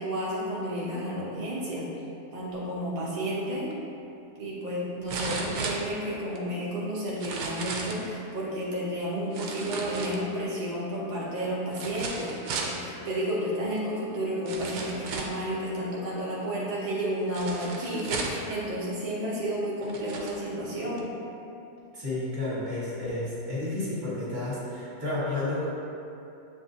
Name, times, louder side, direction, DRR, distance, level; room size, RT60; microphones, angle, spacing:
voice 1, 0.0-1.9 2.3-3.7 4.4-21.0, equal, 55° right, -7 dB, 0.4 m, -31 dB
sound 1, 3.7-3.8 5.1-6.4 7.1-8.0 9.3-10.5 11.7-12.8 13.8-13.9 14.5-15.4 17.3-18.5 19.3-19.4 19.8-20.4 21.0-21.1, right 4 dB, 80° right, 1.1 m, -35 dB
voice 2, 21.9-25.7, left 2 dB, 35° right, -8 dB, 1.2 m, -31 dB
7.4 x 2.7 x 2.7 m, 2.7 s
omnidirectional pair, 1.6 m